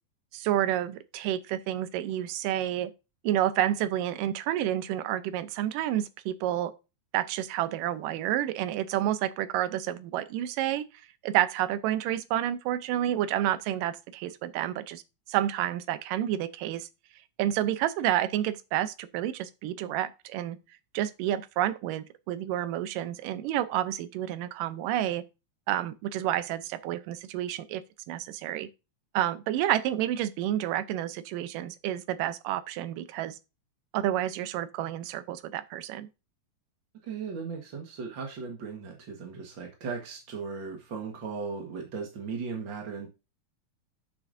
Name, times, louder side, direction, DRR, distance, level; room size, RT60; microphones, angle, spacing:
voice 1, 0.3-2.9 3.2-6.7 7.1-10.8 11.2-15.0 15.3-16.9 17.4-20.6 20.9-25.2 25.7-27.8 28.1-28.7 29.1-33.4 33.9-36.1, right 12 dB, 80° right, 2.3 m, -29 dB
voice 2, 37.0-43.1, right 5 dB, 45° right, 1.7 m, -37 dB
11.5 x 7.3 x 2.6 m
omnidirectional pair, 3.9 m